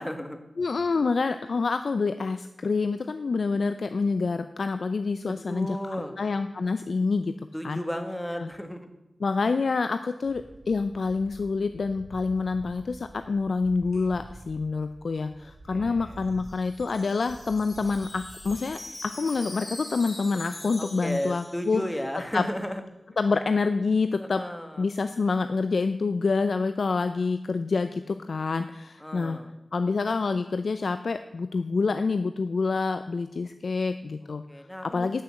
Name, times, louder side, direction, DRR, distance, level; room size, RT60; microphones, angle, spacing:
voice 1, 0.0-0.4 5.5-6.1 7.5-8.9 15.4-16.2 20.8-22.8 24.2-24.9 29.0-29.5 34.5-35.2, equal, 10° left, 7 dB, 1.6 m, -34 dB
voice 2, 0.6-5.8 6.2-7.3 7.6-7.8 8.4-8.5 9.2-21.8 22.3-22.4 23.2-24.4 24.8-29.4 29.7-34.4 34.9-35.2, left 4 dB, 75° left, 10 dB, 0.5 m, -27 dB
sound 1, 10.2-18.6, right 1 dB, 75° right, 3.4 m, -48 dB
Wind chime, 16.2-22.2, left 1 dB, 35° left, 3.6 m, -43 dB
12.0 x 6.8 x 7.8 m, 0.98 s
wide cardioid pair, 60°, 0 cm